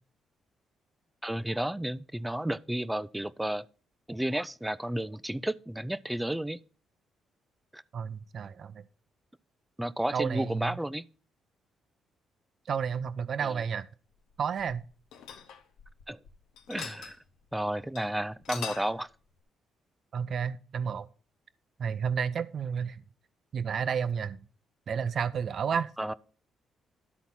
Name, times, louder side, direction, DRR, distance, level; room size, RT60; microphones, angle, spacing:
voice 1, 1.2-3.7 4.1-6.6 7.7-7.8 9.8-11.0 13.4-13.6 16.1-16.2 16.7-17.2 17.5-19.1 26.0-26.1, right 1 dB, 5° right, 0.4 m, -32 dB
voice 2, 7.9-8.8 10.1-10.8 12.7-13.9 14.4-14.8 20.1-21.1 21.8-23.0 23.5-24.4 24.9-25.9, right 7 dB, 55° right, 0.6 m, -31 dB
sound 1, 14.3-16.3 16.6-17.2 17.5-17.6 18.0-18.1 18.3-19.0, left 8 dB, 90° left, 1.0 m, -42 dB
12.0 x 4.1 x 5.9 m
cardioid pair, 90°, 0 cm